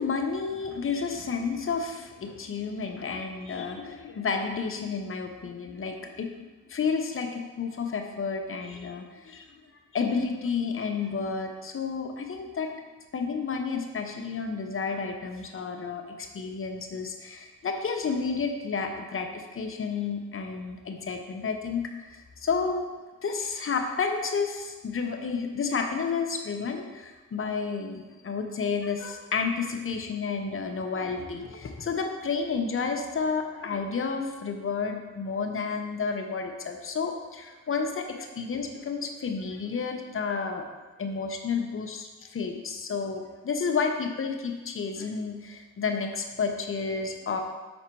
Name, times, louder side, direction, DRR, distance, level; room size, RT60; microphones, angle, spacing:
voice 1, 0.0-9.5 9.9-12.7 13.1-22.9 23.2-40.7 41.0-47.4, left 5 dB, 40° left, 4 dB, 0.9 m, -31 dB
6.0 x 4.2 x 4.6 m, 1.2 s
cardioid pair, 65°, 31 cm